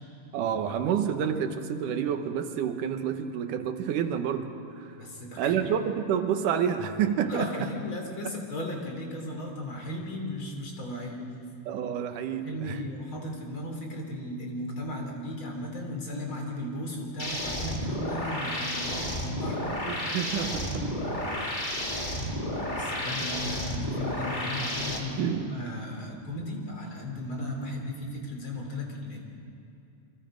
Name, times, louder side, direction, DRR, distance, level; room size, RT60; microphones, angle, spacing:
voice 1, 0.3-4.9 5.4-7.7 11.7-12.8 19.9-21.2 25.2-25.5, right 8 dB, 80° right, 7 dB, 2.6 m, -29 dB
voice 2, 5.0-5.6 7.3-11.3 12.4-19.7 22.7-29.2, left 1 dB, 40° left, 1 dB, 3.9 m, -36 dB
sound 1, 17.2-25.0, left 1 dB, 15° left, 2.0 m, -32 dB
28.5 x 24.5 x 5.1 m, 2.7 s
omnidirectional pair, 3.6 m